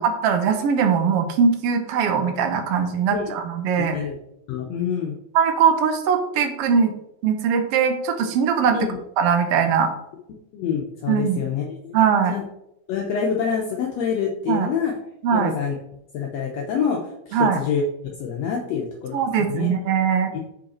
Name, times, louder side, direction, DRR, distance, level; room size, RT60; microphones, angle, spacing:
voice 1, 0.0-4.0 5.3-6.9 7.2-8.9 9.2-9.9 11.1-11.5 11.9-12.4 14.5-14.7 15.2-15.5 17.3-17.6 19.1-20.3, right 6 dB, 70° right, 6 dB, 1.5 m, -21 dB
voice 2, 3.8-4.2 4.5-5.2 8.7-9.0 10.5-12.0 12.3-12.4 12.9-14.9 15.3-15.8 16.1-17.0 17.3-17.8 18.2-19.2 19.5-19.7, left 7 dB, 70° left, 0 dB, 1.7 m, -26 dB
6.5 x 5.2 x 4.3 m, 0.81 s
omnidirectional pair, 3.5 m